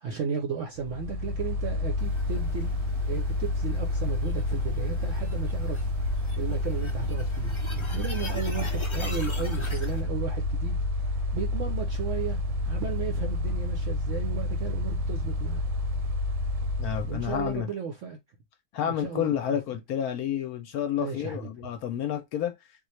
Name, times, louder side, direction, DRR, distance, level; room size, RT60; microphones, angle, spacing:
voice 1, 0.0-5.9 6.4-15.6 17.1-18.2 18.8-19.6 21.0-21.5, right 6 dB, 70° right, 0.7 m, -35 dB
Mechanical fan, 0.8-17.6, left 1 dB, 90° right, 1.3 m, -29 dB
sound 1, 2.0-10.0, left 3 dB, 20° left, 0.9 m, -43 dB
voice 2, 16.8-17.7 18.7-22.5, left 10 dB, 70° left, 1.0 m, -30 dB
3.7 x 2.3 x 3.1 m
omnidirectional pair, 1.9 m